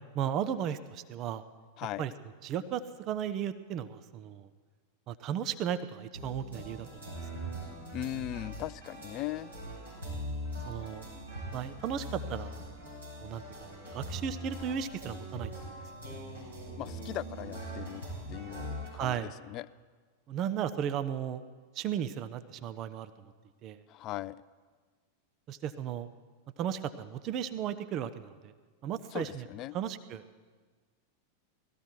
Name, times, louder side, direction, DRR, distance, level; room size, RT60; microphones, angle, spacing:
voice 1, 0.1-1.4 2.0-2.1 2.4-4.5 5.1-7.1 10.7-11.0 11.5-12.7 13.2-15.8 19.0-19.3 20.3-21.4 21.7-23.1 23.6-23.8 25.5-26.1 26.6-28.5 28.8-29.4 29.7-30.2, right 9 dB, 35° right, 12 dB, 0.6 m, -35 dB
sound 1, 6.1-18.9, equal, 85° right, 5.8 m, -41 dB
voice 2, 7.9-9.5 16.8-18.0 18.3-19.7 23.9-24.4 29.1-29.8, left 14 dB, 35° left, 18 dB, 0.3 m, -39 dB
18.0 x 14.0 x 4.6 m, 1.5 s
figure-of-eight pair, 90°, 0 cm